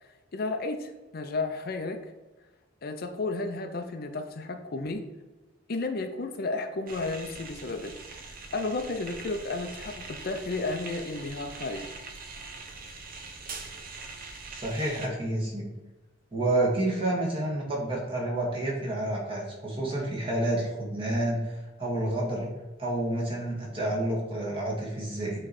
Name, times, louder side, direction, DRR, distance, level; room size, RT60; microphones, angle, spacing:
voice 1, 0.0-2.1 2.8-5.0 5.7-11.9, left 3 dB, 50° left, 6 dB, 0.5 m, -33 dB
sound 1, 6.9-15.1, right 3 dB, 45° right, 0.9 m, -43 dB
voice 2, 14.5-15.7 16.3-22.5 22.8-25.5, right 1 dB, 30° right, -3 dB, 1.9 m, -29 dB
8.7 x 3.2 x 4.2 m, 1.1 s
head